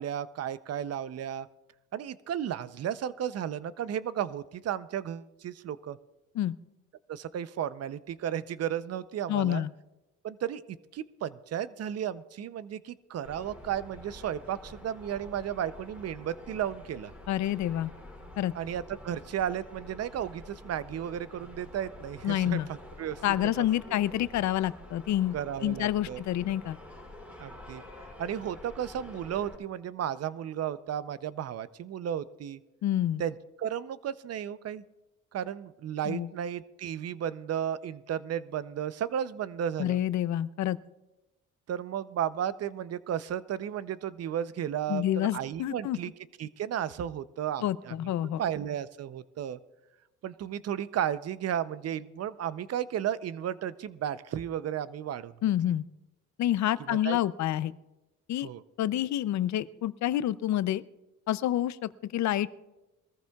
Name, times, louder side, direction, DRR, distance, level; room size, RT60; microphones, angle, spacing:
voice 1, 0.0-1.5 1.9-6.0 7.1-9.6 10.2-17.1 18.5-23.2 23.6-23.7 25.3-26.2 27.4-32.6 33.2-34.8 35.3-40.0 41.7-46.1 46.4-48.0 48.4-49.6 50.2-55.4 56.8-57.2 58.4-58.6, right 10 dB, 55° right, 16 dB, 0.6 m, -34 dB
voice 2, 9.3-9.7 17.3-17.9 18.4-18.5 22.2-22.7 23.2-25.3 25.6-26.8 32.8-33.2 36.0-36.3 39.8-40.8 44.9-46.0 47.6-48.4 55.4-55.8 56.4-57.7 58.3-58.5 58.8-60.8 61.3-62.5, left 12 dB, 70° left, 17 dB, 0.6 m, -28 dB
sound 1, 13.2-29.6, left 1 dB, 5° right, 3.8 m, -48 dB
22.0 x 14.5 x 2.3 m, 1.0 s
cardioid pair, 90°, 30 cm